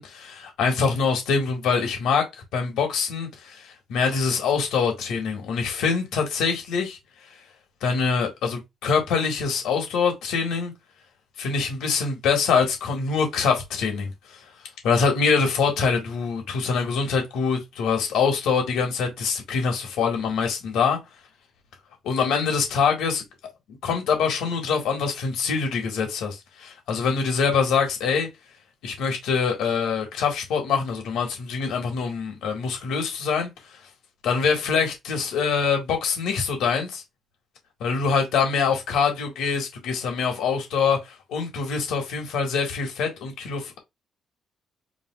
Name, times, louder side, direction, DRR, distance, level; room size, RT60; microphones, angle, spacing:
voice 1, 0.0-2.3 2.5-7.0 7.8-10.7 11.4-14.4 14.8-21.0 22.0-23.2 23.8-28.3 28.8-33.5 34.2-37.0 37.8-43.8, left 5 dB, 85° left, 2.0 m, -24 dB
7.2 x 2.6 x 2.5 m
cardioid pair, 90°, 0 cm